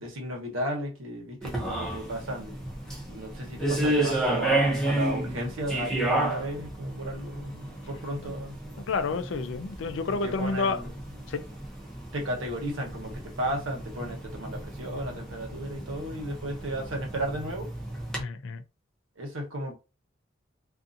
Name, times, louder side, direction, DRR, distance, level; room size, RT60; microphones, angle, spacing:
voice 1, 0.0-2.6 3.0-8.6 10.1-11.1 12.1-17.7 19.2-19.7, equal, 85° right, 1.1 m, -34 dB
sound 1, 1.4-18.2, right 1 dB, ahead, 0.6 m, -32 dB
voice 2, 8.9-10.8 11.3-11.4 18.2-18.6, left 4 dB, 70° left, 0.4 m, -29 dB
2.5 x 2.5 x 2.6 m
head